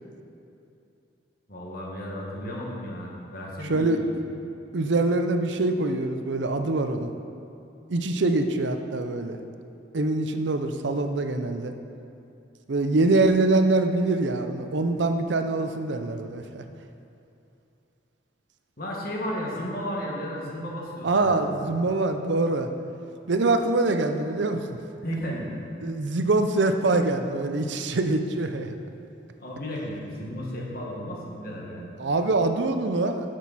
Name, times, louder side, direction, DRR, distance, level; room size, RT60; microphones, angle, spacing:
voice 1, 1.5-4.2 18.8-21.4 25.0-25.5 29.4-31.9, equal, 50° left, -3 dB, 1.7 m, -34 dB
voice 2, 4.7-7.1 7.9-9.4 9.9-11.7 12.7-16.6 21.0-22.7 23.3-24.6 25.8-28.8 32.0-33.3, right 2 dB, 70° right, 7 dB, 0.6 m, -24 dB
12.0 x 6.4 x 4.2 m, 2.7 s
head